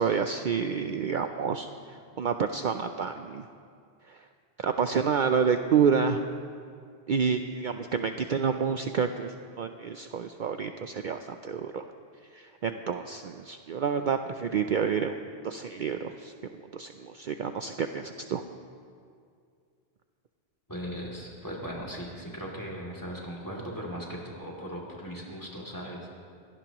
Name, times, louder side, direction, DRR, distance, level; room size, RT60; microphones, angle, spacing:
voice 1, 0.0-3.5 4.1-4.2 4.6-6.2 7.1-11.8 12.3-15.2 15.4-16.3 16.7-18.4, right 6 dB, 55° right, 7 dB, 0.6 m, -29 dB
voice 2, 20.7-26.2, equal, 20° left, -2 dB, 2.6 m, -38 dB
23.0 x 17.5 x 3.0 m, 2.3 s
omnidirectional pair, 1.1 m